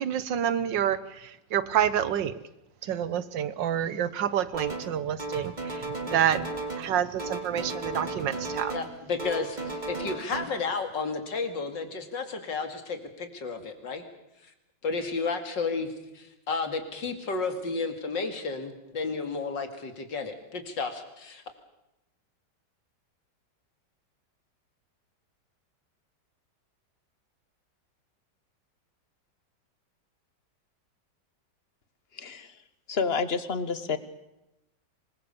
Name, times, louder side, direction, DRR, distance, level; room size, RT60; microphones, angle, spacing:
voice 1, 0.0-2.4 2.8-6.5 6.8-8.7, right 9 dB, 85° right, 15 dB, 1.7 m, -28 dB
sound 1, 4.5-4.9 5.2-6.9 7.2-8.9 9.2-10.4, right 3 dB, 25° right, 2.5 m, -35 dB
voice 2, 8.7-14.1 14.4-14.5 14.8-21.4, left 4 dB, 80° left, 7 dB, 3.0 m, -32 dB
voice 3, 32.1-32.6 32.9-34.0, left 5 dB, 40° left, 13 dB, 1.4 m, -29 dB
25.0 x 21.0 x 7.0 m, 0.90 s
omnidirectional pair, 1.9 m